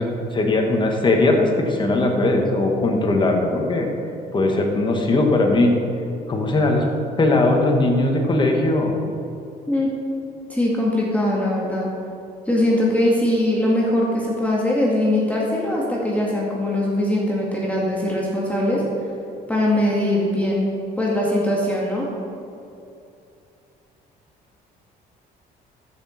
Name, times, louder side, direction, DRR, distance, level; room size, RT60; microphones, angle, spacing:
voice 1, 0.0-3.9 4.3-5.7 6.3-6.8 7.2-8.9, left 2 dB, 30° left, 1 dB, 1.7 m, -19 dB
voice 2, 10.5-11.9 12.5-18.8 19.5-20.7 21.0-22.1, left 1 dB, 10° left, -4 dB, 1.8 m, -21 dB
13.5 x 6.3 x 4.4 m, 2.6 s
cardioid pair, 110°, 17 cm